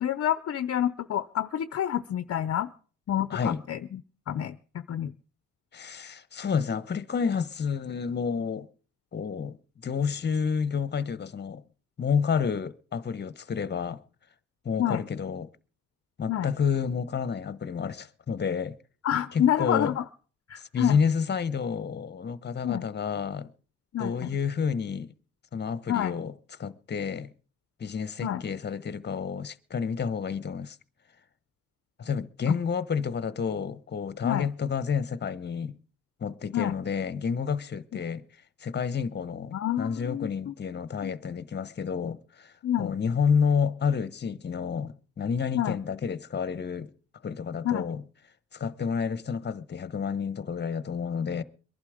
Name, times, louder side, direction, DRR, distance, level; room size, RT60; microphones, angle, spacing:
voice 1, 0.0-2.7 3.1-4.0 4.3-5.1 14.8-15.0 16.3-16.5 19.0-20.0 20.5-21.0 22.6-22.8 23.9-24.3 25.9-26.1 28.2-28.4 32.5-32.6 34.2-34.5 36.5-36.7 39.5-40.5 41.0-41.1 42.6-42.9 45.5-45.8 47.6-47.9, left 10 dB, 50° left, 0.7 m, -28 dB
voice 2, 3.3-3.6 5.7-8.7 9.1-11.6 12.0-14.0 14.6-15.5 16.2-18.8 19.3-20.0 20.6-23.5 24.0-25.1 25.5-26.3 26.6-27.3 27.8-30.8 32.0-35.8 36.2-38.2 38.6-46.9 47.2-48.0 48.5-51.4, left 6 dB, 35° left, 1.1 m, -30 dB
22.5 x 11.5 x 5.0 m
cardioid pair, 90°, 30 cm